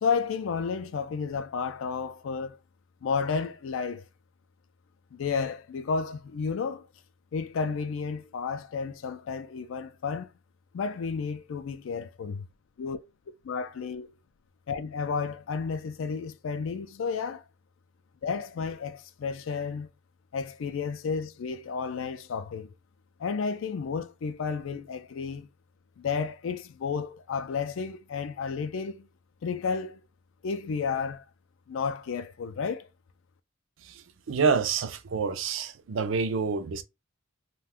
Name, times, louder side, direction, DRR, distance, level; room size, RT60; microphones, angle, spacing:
voice 1, 0.0-2.6 3.0-4.1 5.1-6.9 7.3-10.3 10.7-12.5 12.8-13.0 13.4-14.2 14.7-17.4 18.2-19.9 20.3-22.7 23.2-25.5 26.0-29.1 29.4-30.0 30.4-31.2 31.7-32.9, left 5 dB, 70° left, 0.4 m, -32 dB
voice 2, 33.8-36.8, right 5 dB, 65° right, 0.4 m, -28 dB
2.5 x 2.2 x 3.5 m
head